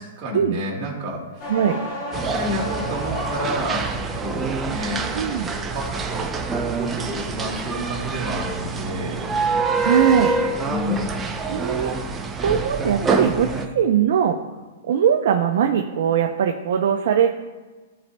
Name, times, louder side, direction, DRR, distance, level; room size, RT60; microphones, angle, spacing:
voice 1, 0.0-1.5 2.3-5.1 5.7-9.2 10.6-11.2, equal, 35° right, -3 dB, 2.0 m, -30 dB
sound 1, 1.4-4.1 4.5-5.1, left 1 dB, 40° left, 1.6 m, -32 dB
sound 2, 2.1-13.7, right 4 dB, 15° right, 0.5 m, -26 dB
voice 2, 5.1-5.5 9.8-10.3 11.5-14.4 14.8-17.3, right 8 dB, 65° right, 4 dB, 0.5 m, -20 dB
12.5 x 4.2 x 2.2 m, 1.3 s
hypercardioid pair, 155°, 0 cm